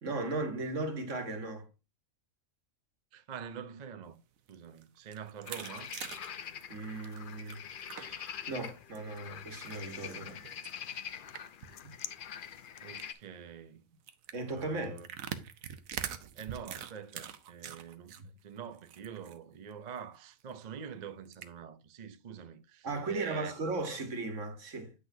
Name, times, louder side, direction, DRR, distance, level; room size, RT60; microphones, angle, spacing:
voice 1, 0.0-1.7 6.7-7.6 7.9-10.4 14.3-15.0 18.2-18.3 22.8-24.9, right 2 dB, 65° right, 1.8 m, -37 dB
voice 2, 3.1-4.2 4.5-5.9 12.8-13.9 14.5-15.1 16.3-18.2 18.4-23.7, right 7 dB, 45° right, 0.6 m, -45 dB
sound 1, 4.4-8.3 8.6-9.2 9.7-11.8 12.1-12.2 12.4-12.6 12.9-13.3 14.1-18.2 18.6-19.4 19.7-19.8 20.1-20.2 21.3-21.5, right 9 dB, 90° right, 1.2 m, -43 dB
sound 2, 5.5-13.1, left 8 dB, 55° left, 0.6 m, -44 dB
9.4 x 6.1 x 2.7 m
omnidirectional pair, 1.4 m